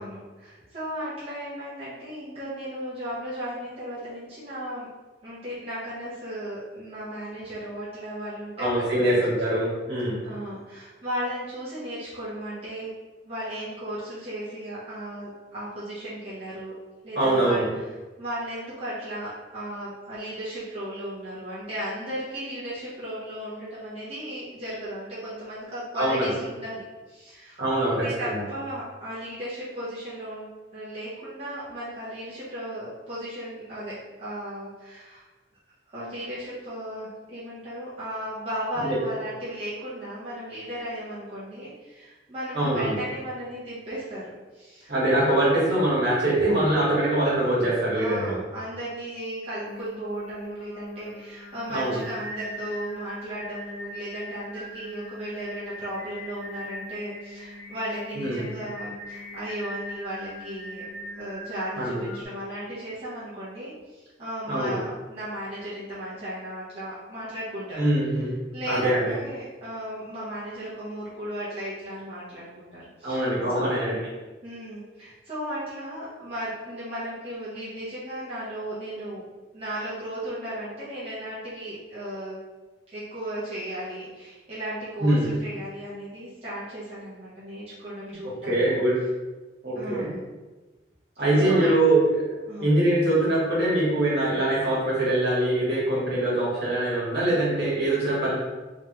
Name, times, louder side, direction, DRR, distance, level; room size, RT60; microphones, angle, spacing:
voice 1, 0.0-4.9 5.2-9.1 10.2-12.9 13.2-16.7 17.0-17.6 18.2-30.5 30.7-33.9 34.2-35.3 35.9-44.9 47.9-60.8 61.1-67.8 68.5-73.3 73.5-73.8 74.4-79.2 79.5-82.4 82.9-88.8 89.7-90.2 91.4-91.7 92.5-92.7, equal, 35° right, -11 dB, 1.0 m, -35 dB
voice 2, 8.6-10.2 17.1-17.7 25.9-26.3 27.6-28.4 38.8-39.0 42.5-42.9 44.9-48.3 51.7-52.0 58.1-58.4 61.8-62.0 64.5-64.8 67.8-68.3 68.7-69.1 73.0-73.9 85.0-85.3 88.4-89.0 89.6-90.1 91.2-92.2 92.6-98.3, right 1 dB, 65° right, -7 dB, 1.5 m, -23 dB
Singing, 49.6-62.2, left 1 dB, 70° left, 0.7 m, -41 dB
3.3 x 3.2 x 3.0 m, 1.2 s
head